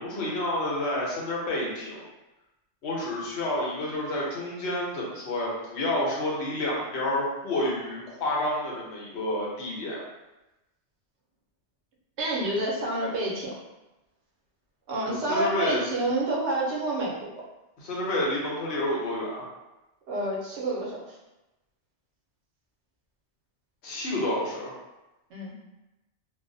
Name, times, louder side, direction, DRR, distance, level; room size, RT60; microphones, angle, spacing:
voice 1, 0.0-2.1 2.8-10.0 15.1-15.8 17.8-19.5 23.8-24.7, left 1 dB, 70° left, -4 dB, 1.0 m, -29 dB
voice 2, 12.2-13.6 14.9-17.3 20.1-21.2 25.3-25.5, right 1 dB, 80° right, -3 dB, 0.9 m, -28 dB
2.4 x 2.0 x 2.6 m, 0.99 s
omnidirectional pair, 1.1 m